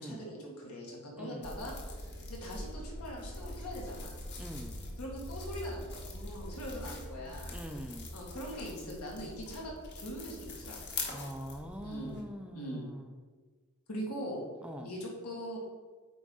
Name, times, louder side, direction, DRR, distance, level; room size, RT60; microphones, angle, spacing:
voice 1, 0.0-4.1 5.0-7.6 8.1-10.8 11.8-12.2 12.5-12.9 13.9-14.4 14.8-15.6, equal, 85° left, -3 dB, 2.0 m, -42 dB
voice 2, 1.2-1.5 4.4-4.8 7.5-8.1 11.1-13.1 14.6-14.9, equal, 5° right, 4 dB, 0.4 m, -43 dB
sound 1, 1.4-12.2, left 2 dB, 50° left, 1.3 m, -43 dB
8.2 x 4.5 x 3.9 m, 1.4 s
head